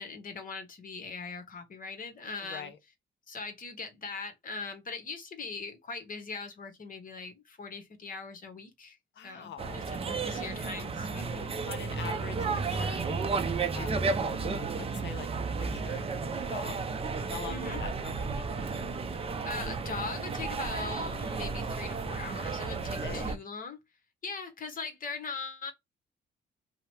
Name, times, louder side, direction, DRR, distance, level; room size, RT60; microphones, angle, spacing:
voice 1, 0.0-2.7 3.3-9.0 9.2-11.6 17.5-17.8 19.1-23.8 24.2-25.7, left 4 dB, 45° left, 1.0 m, -40 dB
voice 2, 2.4-2.8 9.2-9.8 11.7-13.3 13.7-15.3 15.6-16.8 17.1-18.8 22.8-23.3, left 7 dB, 65° left, 0.7 m, -45 dB
sound 1, 9.6-23.4, right 4 dB, 30° right, 0.5 m, -33 dB
2.8 x 2.1 x 3.1 m
cardioid pair, 90°, 20 cm